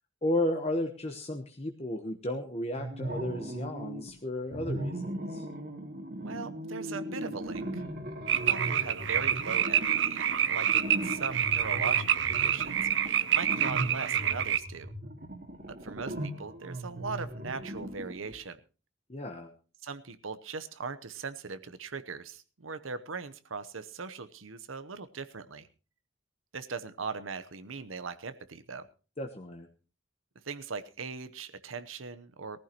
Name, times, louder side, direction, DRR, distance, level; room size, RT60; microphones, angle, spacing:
voice 1, 0.2-5.5 19.1-19.5 29.2-29.7, left 1 dB, 30° left, 4 dB, 1.1 m, -33 dB
sound 1, 2.7-4.1 4.5-18.4, right 1 dB, 50° right, 2.2 m, -38 dB
voice 2, 6.2-7.8 8.3-14.9 15.7-18.6 19.8-25.7 26.5-28.9 30.4-32.6, right 4 dB, 90° right, 12 dB, 0.9 m, -40 dB
sound 2, 8.3-14.6, right 9 dB, 65° right, 0.6 m, -27 dB
19.5 x 14.5 x 3.0 m, 0.34 s
head